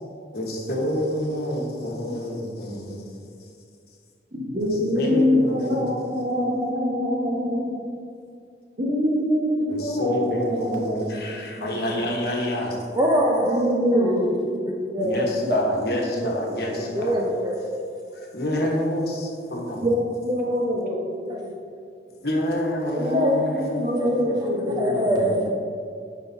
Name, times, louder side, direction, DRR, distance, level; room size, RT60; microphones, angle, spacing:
voice 1, 0.3-3.1 4.6-4.7 4.9-5.8 9.7-12.8 15.0-17.1 18.3-19.9 22.2-25.4, left 1 dB, 60° left, -1 dB, 1.2 m, -28 dB
voice 2, 4.3-7.8 8.8-10.9 11.3-12.0 13.4-14.7 14.9-15.6 15.9-16.7 17.3-17.4 19.8-21.5 22.9-25.4, left 1 dB, 45° right, -2 dB, 1.1 m, -25 dB
voice 3, 12.9-13.6 13.9-14.3 15.0-15.1 16.9-17.7 21.3-21.4 23.1-23.3 24.0-24.1 24.4-25.5, equal, 25° right, 0 dB, 0.5 m, -24 dB
9.8 x 5.3 x 2.7 m, 2.4 s
head